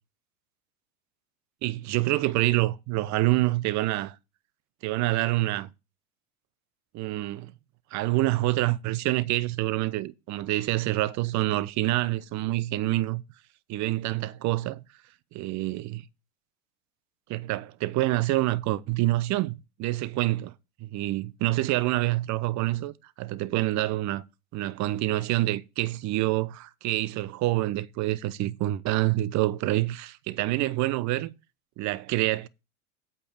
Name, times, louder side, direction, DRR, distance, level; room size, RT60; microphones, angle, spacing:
voice 1, 1.6-4.2 4.8-5.7 6.9-7.5 7.9-13.2 13.7-14.8 15.3-16.0 17.3-19.5 19.8-20.5 20.8-24.2 24.5-31.3 31.8-32.5, right 17 dB, 40° right, 0.8 m, -27 dB
8.6 x 5.5 x 6.5 m
hypercardioid pair, 100°, 43 cm